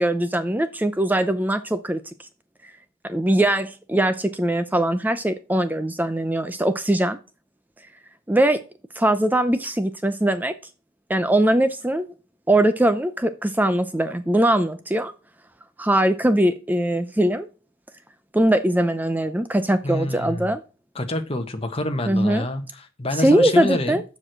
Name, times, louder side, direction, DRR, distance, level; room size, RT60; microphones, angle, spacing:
voice 1, 0.0-2.0 2.6-2.7 3.1-7.2 8.3-8.6 9.0-10.5 11.1-12.1 12.5-15.1 15.8-17.5 18.3-20.6 22.1-22.5 23.2-24.0, right 1 dB, 10° right, 0.5 m, -21 dB
voice 2, 19.8-20.5 20.9-24.0, left 1 dB, 25° left, 1.3 m, -27 dB
7.5 x 6.3 x 7.7 m
head